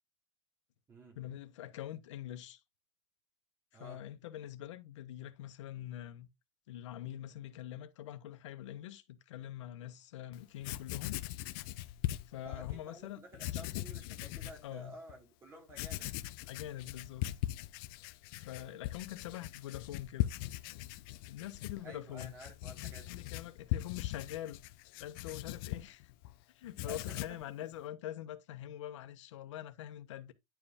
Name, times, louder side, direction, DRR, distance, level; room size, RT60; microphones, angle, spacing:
voice 1, 1.1-2.6 3.8-6.3 6.7-11.2 12.3-13.2 13.5-13.9 14.6-15.0 16.5-17.2 18.3-20.3 21.3-22.3 23.1-24.6 25.0-26.1 26.5-30.3, left 12 dB, 90° left, 1.2 m, -44 dB
Writing, 10.3-10.4 10.6-12.8 13.3-14.6 15.1-15.2 15.7-26.3 26.6-27.5, left 15 dB, 50° left, 0.6 m, -40 dB
voice 2, 12.4-16.1 21.8-23.2 26.8-27.7, right 1 dB, 15° right, 2.6 m, -52 dB
10.5 x 4.8 x 3.5 m
supercardioid pair, 170°, 15 cm